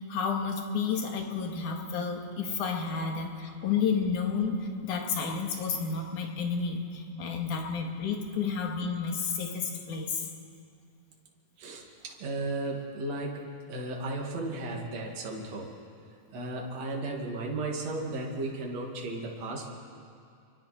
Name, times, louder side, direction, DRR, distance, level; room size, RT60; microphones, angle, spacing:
voice 1, 0.0-10.3, left 5 dB, 70° left, 2 dB, 3.3 m, -31 dB
voice 2, 11.6-15.7 16.3-19.7, right 2 dB, 55° right, 0 dB, 3.4 m, -35 dB
29.0 x 24.0 x 4.4 m, 2.4 s
omnidirectional pair, 3.7 m